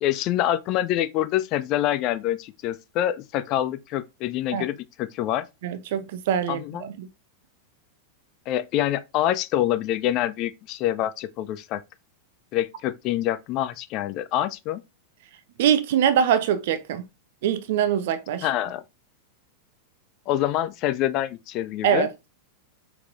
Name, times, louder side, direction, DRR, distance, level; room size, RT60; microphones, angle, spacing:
voice 1, 0.0-5.5 6.5-6.9 8.5-11.8 12.5-14.8 18.4-18.8 20.3-22.1, left 12 dB, 40° left, 0.4 m, -26 dB
voice 2, 5.6-7.1 15.6-17.0 17.4-18.5 21.8-22.3, right 9 dB, 55° right, 0.6 m, -23 dB
4.6 x 3.7 x 2.5 m
figure-of-eight pair, 90°, 0 cm